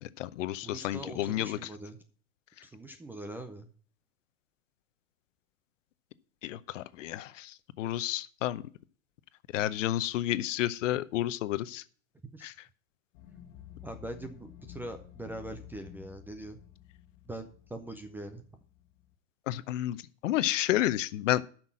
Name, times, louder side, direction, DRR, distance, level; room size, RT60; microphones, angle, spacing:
voice 1, 0.0-1.7 6.4-8.6 9.5-11.8 12.4-12.5 19.5-20.0 20.2-21.4, left 14 dB, 65° left, 15 dB, 0.8 m, -31 dB
voice 2, 0.6-2.0 2.6-3.7 12.3-12.5 13.8-16.6 17.3-18.4, right 1 dB, 5° right, 8 dB, 0.4 m, -42 dB
sound 1, 13.1-19.1, left 11 dB, 45° left, 1.5 m, -51 dB
9.6 x 6.1 x 7.4 m, 0.44 s
hypercardioid pair, 135°, 41 cm